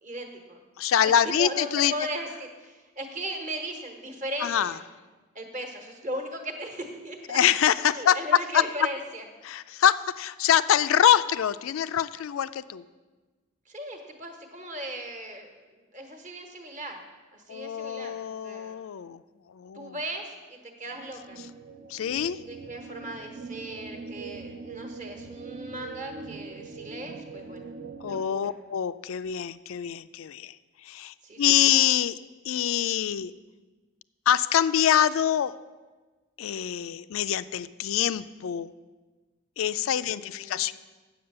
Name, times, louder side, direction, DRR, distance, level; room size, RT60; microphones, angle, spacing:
voice 1, 0.0-0.6 1.0-4.8 5.3-7.4 7.8-9.3 13.7-17.0 17.3-18.8 19.7-21.4 22.5-27.7 28.0-28.5 31.2-31.8 40.0-40.7, equal, 35° right, 4 dB, 1.2 m, -38 dB
voice 2, 0.8-1.9 4.4-4.7 7.3-8.2 8.5-8.6 9.4-12.8 17.5-19.2 19.5-19.9 21.9-22.4 28.0-30.5 30.9-32.2 32.5-33.3 34.3-35.5 36.4-38.7 39.6-40.7, left 10 dB, 80° left, 15 dB, 0.4 m, -25 dB
sound 1, 20.9-28.2, right 4 dB, 60° right, 0.5 m, -42 dB
8.6 x 7.4 x 6.7 m, 1.3 s
head